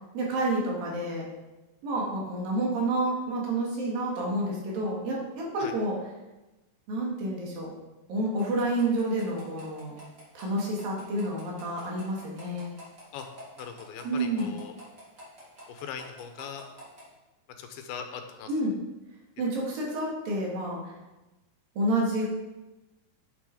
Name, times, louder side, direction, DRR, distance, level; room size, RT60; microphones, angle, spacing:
voice 1, 0.1-1.3 1.8-6.0 6.9-7.7 8.1-9.9 10.4-12.7 14.0-14.6 18.5-18.8 19.4-20.9 21.8-22.3, right 1 dB, 70° right, -3 dB, 3.8 m, -29 dB
sound 1, 8.4-17.1, equal, 30° right, 3.2 m, -50 dB
voice 2, 13.6-14.7 15.7-16.6 17.6-18.5, left 7 dB, 85° left, 6 dB, 2.8 m, -40 dB
9.2 x 7.2 x 4.9 m, 1.1 s
omnidirectional pair, 4.3 m